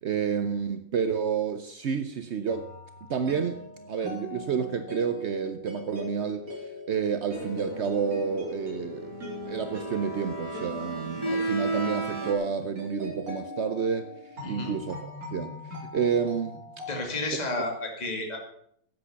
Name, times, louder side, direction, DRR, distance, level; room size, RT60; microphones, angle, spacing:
voice 1, 0.0-2.7 3.1-6.5 6.9-9.1 9.5-14.1 14.5-16.6, right 6 dB, 80° right, 0.6 m, -29 dB
sound 1, 2.5-17.0, left 2 dB, 45° right, 4.8 m, -41 dB
sound 2, 7.3-12.3, right 2 dB, 15° right, 2.3 m, -34 dB
voice 2, 16.9-18.4, left 2 dB, 20° left, 2.2 m, -31 dB
11.0 x 8.5 x 6.9 m
omnidirectional pair, 2.2 m